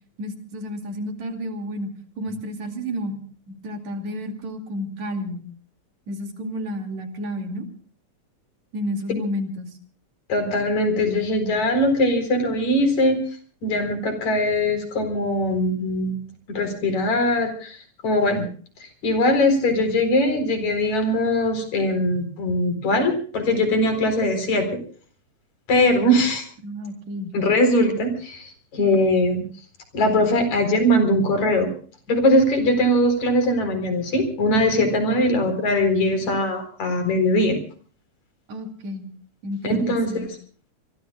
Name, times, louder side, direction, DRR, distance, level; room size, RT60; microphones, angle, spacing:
voice 1, 0.2-1.9 2.2-3.2 3.5-5.5 6.1-7.7 8.7-9.7 26.6-27.5 38.5-39.0 39.4-40.3, equal, 70° right, 5 dB, 3.8 m, -31 dB
voice 2, 10.3-13.2 13.6-16.2 16.5-17.8 18.0-18.5 19.0-24.8 25.7-26.4 27.3-29.4 29.9-31.7 32.1-37.6 39.6-40.2, left 1 dB, 70° left, 8 dB, 5.5 m, -21 dB
27.0 x 22.5 x 2.3 m, 0.44 s
omnidirectional pair, 3.4 m